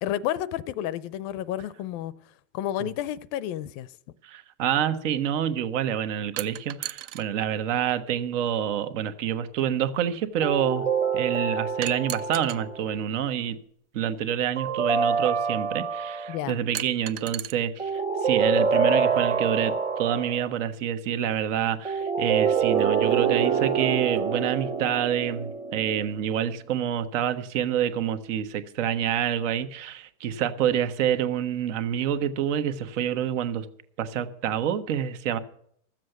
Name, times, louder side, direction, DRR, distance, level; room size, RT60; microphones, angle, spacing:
voice 1, 0.0-2.1 2.5-3.9 16.3-16.6, left 12 dB, 50° left, 0.6 m, -30 dB
voice 2, 4.2-10.9 11.1-13.6 13.9-33.7 34.0-35.4, right 9 dB, 70° right, 1.3 m, -27 dB
sound 1, 6.4-7.2 8.5-8.6 11.8-12.6 14.1-14.2 16.7-17.5, right 12 dB, 35° right, 0.5 m, -35 dB
sound 2, 10.4-12.9 14.6-16.4 17.8-20.5 21.9-26.4, right 6 dB, 15° right, 0.9 m, -26 dB
13.5 x 7.5 x 7.9 m
supercardioid pair, 130°, 39 cm